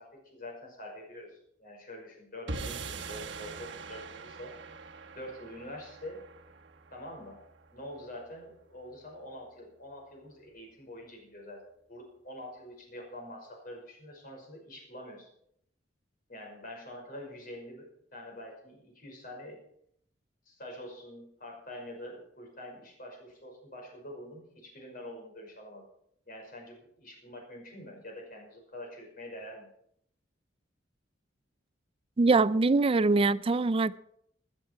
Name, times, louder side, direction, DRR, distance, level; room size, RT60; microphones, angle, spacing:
voice 1, 0.0-4.5 5.2-6.2 6.9-7.4 7.7-15.3 16.3-19.6 20.5-25.9 26.3-29.7, left 1 dB, 50° left, 5.6 m, -45 dB
sound 1, 2.5-8.8, right 3 dB, 75° right, 1.3 m, -43 dB
voice 2, 32.2-34.0, right 3 dB, 30° right, 0.4 m, -23 dB
18.5 x 10.0 x 4.7 m
head